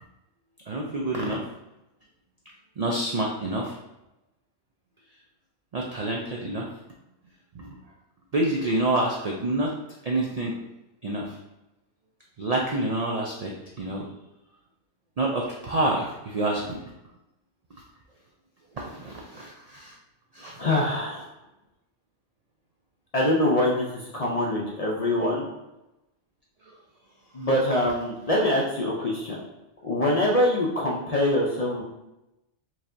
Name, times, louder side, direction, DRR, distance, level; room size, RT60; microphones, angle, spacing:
voice 1, 0.7-1.4 2.8-3.7 5.7-6.7 7.5-7.7 8.3-9.7 10.0-10.5 11.0-11.2 12.4-13.5 13.8-14.1 15.2-16.8 18.8-19.9 20.3-20.6, right 2 dB, 80° right, -2 dB, 0.3 m, -27 dB
voice 2, 20.6-21.2 23.1-25.5 27.3-29.4 29.8-31.8, left 1 dB, 45° left, -3 dB, 0.5 m, -24 dB
4.6 x 2.7 x 2.5 m, 0.94 s
omnidirectional pair, 1.3 m